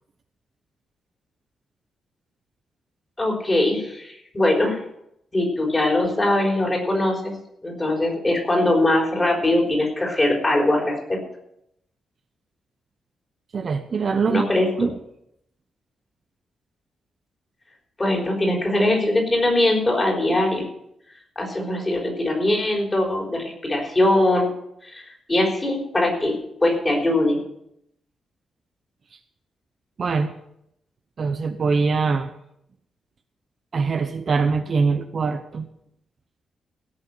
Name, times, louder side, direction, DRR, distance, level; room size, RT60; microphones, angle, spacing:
voice 1, 3.2-4.8 5.3-7.3 7.6-11.2 14.3-14.7 18.0-20.7 21.4-24.5 24.8-27.4, left 1 dB, 20° left, 0 dB, 3.9 m, -21 dB
voice 2, 13.5-14.4 14.8-14.9 30.0-30.3 31.2-32.3 33.7-35.7, right 4 dB, 40° right, 7 dB, 0.8 m, -23 dB
17.0 x 6.5 x 7.8 m, 0.76 s
wide cardioid pair, 155°, 0 cm